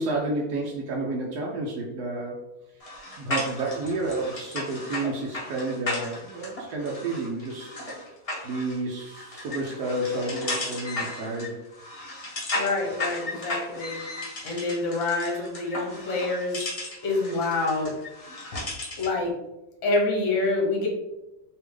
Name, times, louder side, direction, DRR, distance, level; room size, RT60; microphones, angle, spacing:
voice 1, 0.0-2.3 3.2-7.7 8.4-11.6, right 2 dB, 85° right, -2 dB, 1.2 m, -30 dB
sound 1, 2.8-19.2, left 2 dB, 35° left, 0.6 m, -35 dB
voice 2, 12.6-14.0 14.4-16.6 17.0-17.9 19.0-19.3 19.8-20.9, left 3 dB, 55° left, -1 dB, 1.3 m, -26 dB
3.3 x 3.1 x 3.3 m, 0.98 s
omnidirectional pair, 1.7 m